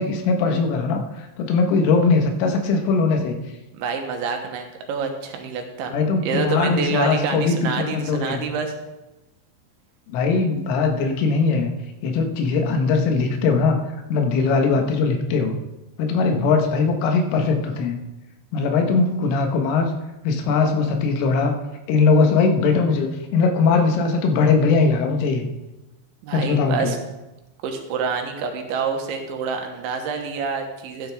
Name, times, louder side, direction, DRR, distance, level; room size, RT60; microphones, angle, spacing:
voice 1, 0.0-3.4 5.9-8.5 10.1-11.7 12.0-13.8 14.1-15.5 16.0-18.0 18.5-19.9 20.3-21.6 21.9-25.5 26.3-26.9, left 4 dB, 90° left, 4 dB, 3.8 m, -20 dB
voice 2, 3.7-5.9 6.2-8.7 26.2-27.0 27.6-31.1, right 5 dB, 80° right, 4 dB, 3.4 m, -27 dB
13.0 x 10.5 x 3.5 m, 1.0 s
omnidirectional pair, 5.5 m